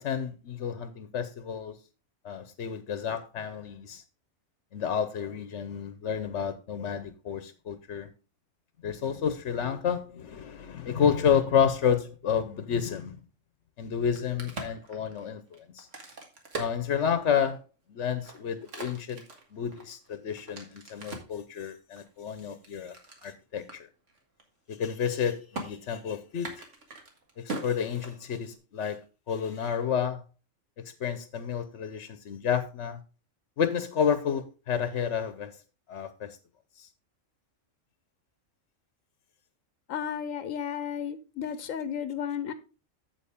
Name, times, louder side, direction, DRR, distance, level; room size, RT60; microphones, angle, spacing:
voice 1, 0.0-1.8 2.2-4.0 4.7-8.1 8.8-13.2 13.8-15.4 15.7-15.9 16.6-17.6 17.9-19.2 19.5-22.9 23.2-23.9 24.7-26.6 27.4-29.0 29.3-30.2 31.0-33.0 33.6-35.5 35.9-36.4 36.8-36.9, left 7 dB, 65° left, 1.0 m, -30 dB
Crack, 13.9-17.6 18.1-21.4 22.0-23.3 23.7-23.8 24.1-24.4 24.7-25.2 25.5-25.7 26.3-28.6, right 3 dB, 70° right, 2.1 m, -41 dB
voice 2, 39.9-42.5, left 8 dB, 90° left, 1.1 m, -33 dB
8.5 x 7.8 x 3.5 m
omnidirectional pair, 1.3 m